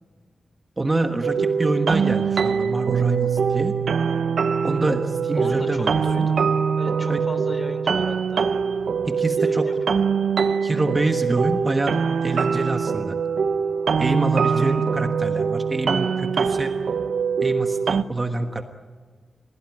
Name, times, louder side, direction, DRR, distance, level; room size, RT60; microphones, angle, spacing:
voice 1, 0.8-3.7 4.6-6.3 7.1-7.2 9.0-9.7 10.6-12.0 12.2-13.2 14.0-16.7 17.4-18.6, right 2 dB, 25° right, 5 dB, 1.3 m, -26 dB
sound 1, 1.2-18.0, right 6 dB, 75° right, 0.7 m, -23 dB
Bass guitar, 2.9-9.1, right 8 dB, 60° right, 4.3 m, -32 dB
voice 2, 5.3-6.4 6.8-8.5 9.4-10.0 14.4-14.8, left 2 dB, 25° left, 9 dB, 3.2 m, -37 dB
30.0 x 17.0 x 9.8 m, 1.5 s
wide cardioid pair, 160°, 0 cm